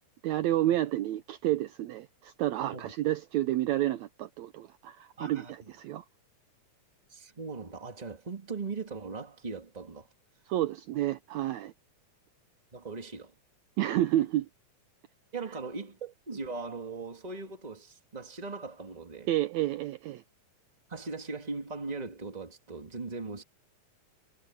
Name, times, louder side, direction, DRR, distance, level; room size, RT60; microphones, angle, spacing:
voice 1, 0.2-6.0 10.5-11.7 13.8-14.5 19.3-20.2, right 13 dB, 75° right, 1.8 m, -30 dB
voice 2, 5.2-5.5 7.1-10.1 12.7-13.3 15.3-19.3 20.9-23.4, right 4 dB, 15° right, 2.0 m, -39 dB
omnidirectional pair, 3.7 m